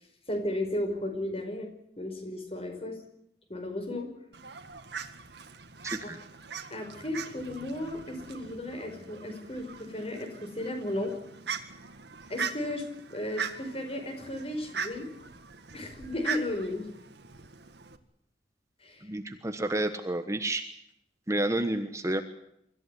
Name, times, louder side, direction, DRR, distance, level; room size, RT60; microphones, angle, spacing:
voice 1, 0.3-1.7 2.0-3.0 3.5-4.1 6.7-11.1 12.3-15.1 15.7-16.9 18.8-19.1, left 1 dB, 35° left, 5 dB, 5.1 m, -34 dB
Fowl, 4.3-18.0, right 6 dB, 65° right, 1.9 m, -41 dB
voice 2, 5.8-6.2 19.0-20.6 21.3-22.2, right 1 dB, 15° right, 8 dB, 1.2 m, -30 dB
25.0 x 14.5 x 10.0 m, 0.76 s
head